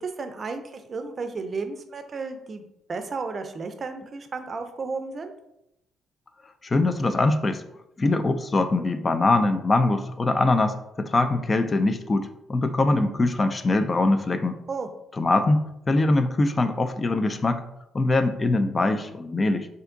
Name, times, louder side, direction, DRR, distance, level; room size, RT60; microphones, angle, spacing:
voice 1, 0.0-2.6 2.9-5.3 14.7-14.9, right 4 dB, 40° right, 7 dB, 0.5 m, -33 dB
voice 2, 6.6-7.6 8.0-14.6 15.2-17.6 17.9-19.7, left 2 dB, 30° left, 9 dB, 0.3 m, -23 dB
3.4 x 2.6 x 3.7 m, 0.83 s
cardioid pair, 90°, 0 cm